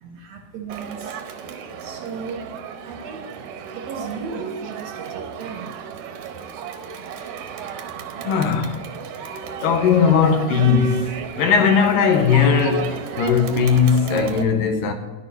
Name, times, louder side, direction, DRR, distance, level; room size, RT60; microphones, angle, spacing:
voice 1, 0.0-1.2 1.8-2.5 2.9-3.4 3.8-5.9, right 5 dB, 70° right, 1.7 m, -35 dB
Crowd, 0.7-14.4, right 6 dB, 85° right, 2.4 m, -33 dB
voice 2, 8.3-8.8 9.6-14.9, left 6 dB, 85° left, 2.7 m, -18 dB
10.5 x 8.8 x 4.2 m
omnidirectional pair, 3.8 m